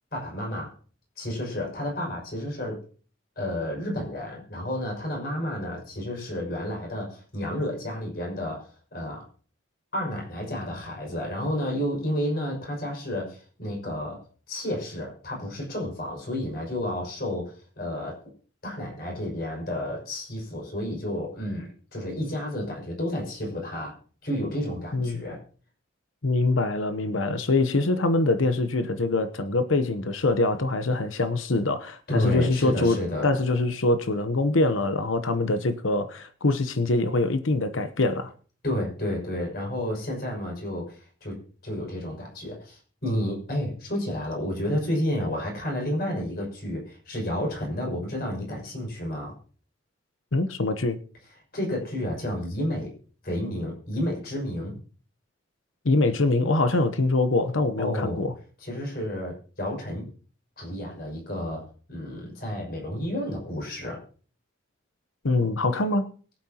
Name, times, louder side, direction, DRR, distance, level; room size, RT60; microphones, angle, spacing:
voice 1, 0.1-0.7 1.2-2.8 3.4-9.2 9.9-14.2 14.5-18.2 18.6-24.0 24.2-25.4 32.1-33.3 38.6-41.4 41.6-49.4 51.5-52.9 53.2-54.7 57.8-58.3 58.6-60.1 60.6-61.6 61.9-64.0, left 1 dB, 50° left, 6.0 m, -31 dB
voice 2, 26.2-33.0 33.2-38.3 50.3-51.0 55.8-58.3 65.2-66.1, left 2 dB, 85° left, 1.0 m, -24 dB
22.5 x 8.7 x 2.9 m
head